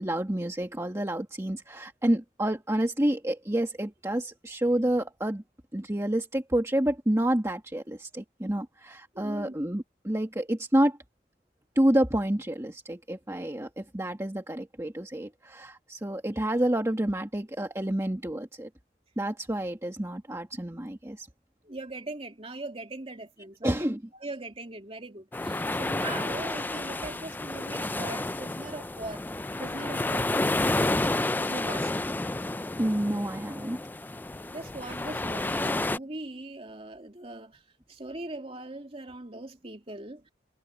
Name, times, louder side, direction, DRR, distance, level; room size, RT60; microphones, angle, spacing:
voice 1, 0.0-5.4 5.7-11.0 11.7-18.7 19.2-21.3 23.6-24.0 32.8-33.8, right 1 dB, 15° right, 1.5 m, -29 dB
voice 2, 9.1-9.5 21.6-23.7 24.1-29.2 29.6-30.3 31.4-32.0 34.5-37.6 37.9-40.2, right 2 dB, 35° right, 2.5 m, -40 dB
sound 1, 25.3-36.0, left 2 dB, 10° left, 0.3 m, -30 dB
head